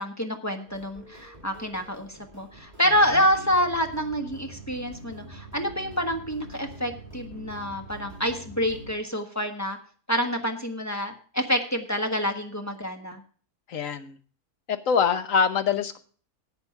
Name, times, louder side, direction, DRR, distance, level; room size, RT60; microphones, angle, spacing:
voice 1, 0.0-9.8 10.1-13.2, equal, 10° left, 4 dB, 1.3 m, -27 dB
sound 1, 0.7-8.9, equal, 25° right, 2.7 m, -44 dB
voice 2, 13.7-14.1 14.7-16.0, left 6 dB, 60° left, 10 dB, 1.3 m, -24 dB
11.0 x 8.1 x 5.8 m, 0.43 s
omnidirectional pair, 1.7 m